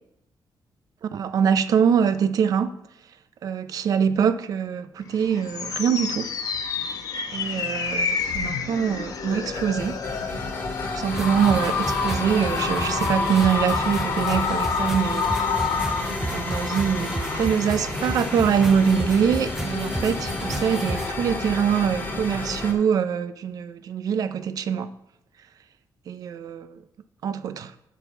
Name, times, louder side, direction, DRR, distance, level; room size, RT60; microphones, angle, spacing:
voice 1, 1.0-2.8 3.4-6.3 7.3-10.0 10.8-15.6 16.3-24.9 26.1-26.8 27.2-27.7, right 7 dB, 60° right, 0.5 m, -24 dB
sound 1, 5.1-17.5, left 5 dB, 60° left, 1.0 m, -29 dB
sound 2, 8.8-22.7, left 2 dB, 30° left, 1.5 m, -32 dB
sound 3, 11.1-21.1, right 1 dB, 5° right, 0.5 m, -33 dB
9.0 x 4.7 x 7.0 m
cardioid pair, 155°, 7 cm